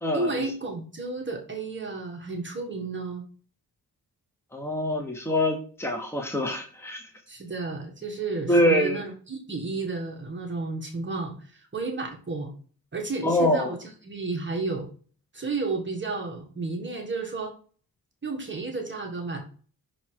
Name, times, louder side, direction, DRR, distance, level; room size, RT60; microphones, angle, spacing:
voice 1, 0.1-3.2 7.3-12.5 12.9-14.9 15.3-17.5 18.2-19.4, right 3 dB, 30° right, 2 dB, 1.4 m, -32 dB
voice 2, 4.5-7.0 8.5-9.0 13.2-13.7, left 1 dB, 5° left, 2 dB, 1.2 m, -24 dB
6.1 x 4.0 x 4.6 m, 0.41 s
wide cardioid pair, 115°, 37 cm